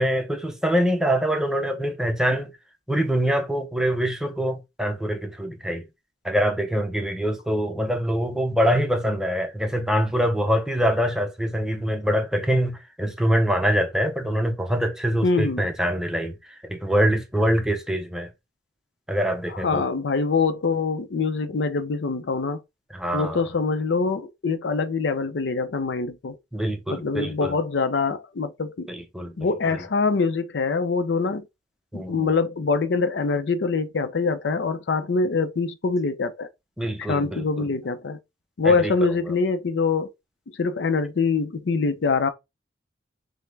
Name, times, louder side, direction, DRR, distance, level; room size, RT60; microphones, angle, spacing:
voice 1, 0.0-2.5 2.9-5.8 6.2-16.3 16.6-18.3 19.1-19.8 22.9-23.4 26.5-27.5 28.9-29.3 31.9-32.3 36.8-37.7 38.6-38.9, equal, 5° right, 0.6 m, -24 dB
voice 2, 15.2-15.6 19.5-22.6 23.1-26.4 26.9-28.9 29.4-31.5 31.9-36.5 37.1-38.2 38.6-40.1 40.6-42.3, left 4 dB, 70° left, 0.5 m, -24 dB
5.6 x 2.1 x 3.3 m
head